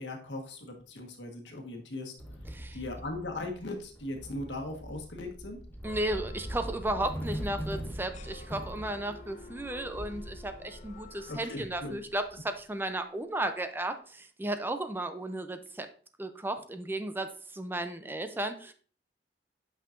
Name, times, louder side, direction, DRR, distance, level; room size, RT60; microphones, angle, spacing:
voice 1, 0.0-2.1 2.7-5.6 11.3-12.0, left 2 dB, 90° left, 3 dB, 1.3 m, -38 dB
sound 1, 2.2-12.4, equal, 10° left, 0.8 m, -42 dB
voice 2, 2.5-2.8 5.8-15.9 16.2-18.7, right 1 dB, 10° right, 8 dB, 0.4 m, -34 dB
sound 2, 5.8-11.6, left 3 dB, 45° left, 0.5 m, -51 dB
8.4 x 5.6 x 2.5 m, 0.43 s
head